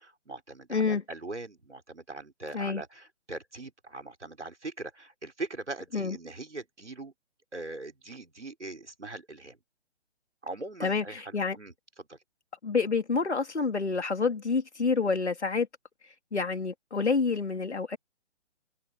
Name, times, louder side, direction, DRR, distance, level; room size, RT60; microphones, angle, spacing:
voice 1, 0.0-7.1 7.5-9.6 10.4-12.2, right 2 dB, 85° right, 4.6 m, -41 dB
voice 2, 0.7-1.0 2.5-2.8 5.9-6.2 10.8-11.6 12.6-15.7 16.3-18.0, left 4 dB, 75° left, 3.4 m, -28 dB
figure-of-eight pair, 135°, 34 cm